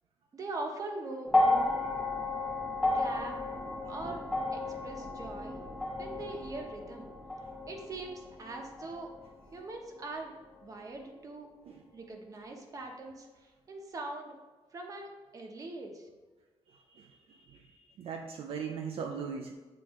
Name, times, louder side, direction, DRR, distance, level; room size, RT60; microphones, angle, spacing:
voice 1, 0.3-1.8 2.9-3.4 3.9-4.2 4.5-5.6 6.0-7.1 7.7-9.1 9.5-10.3 10.6-11.5 11.9-13.3 13.7-14.3 14.7-16.1, right 2 dB, 35° right, 2 dB, 0.9 m, -41 dB
sound 1, 1.3-9.6 10.7-10.8, left 2 dB, 5° left, 0.8 m, -33 dB
voice 2, 18.0-19.5, right 6 dB, 65° right, 3 dB, 0.4 m, -38 dB
8.7 x 3.0 x 3.6 m, 1.3 s
cardioid pair, 140°, 10 cm